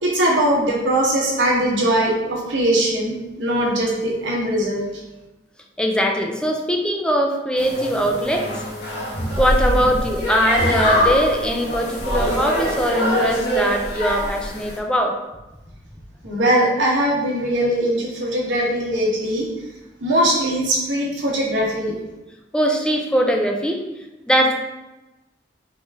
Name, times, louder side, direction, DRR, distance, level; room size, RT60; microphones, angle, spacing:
voice 1, 0.0-5.0 16.2-19.5 20.0-22.0, right 1 dB, 85° right, -4 dB, 1.4 m, -21 dB
voice 2, 5.8-8.5 9.4-15.1 22.5-23.8 24.3-24.5, equal, 5° left, 2 dB, 0.5 m, -21 dB
sound 1, 7.6-14.8, equal, 60° left, 1.4 m, -23 dB
4.2 x 3.5 x 3.5 m, 1.0 s
head